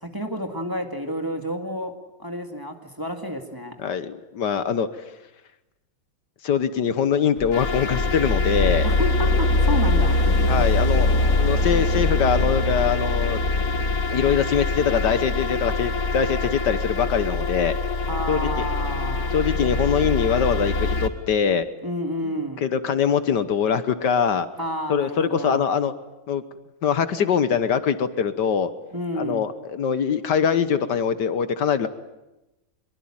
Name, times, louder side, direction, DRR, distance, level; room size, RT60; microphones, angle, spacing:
voice 1, 0.0-1.9 2.2-3.8 8.8-10.7 18.1-19.3 21.8-22.7 24.6-25.6 28.9-29.5, equal, 10° right, 4 dB, 2.0 m, -30 dB
voice 2, 3.8-4.9 6.4-8.9 10.5-11.1 11.4-13.4 14.1-17.8 18.3-18.5 19.3-21.6 22.6-24.5 24.9-25.9 26.3-26.4 26.8-28.7 29.1-31.9, left 7 dB, 70° left, 12 dB, 1.7 m, -23 dB
sound 1, 7.4-21.1, left 2 dB, 45° left, 2.1 m, -23 dB
24.0 x 22.5 x 8.8 m, 1.0 s
omnidirectional pair, 2.0 m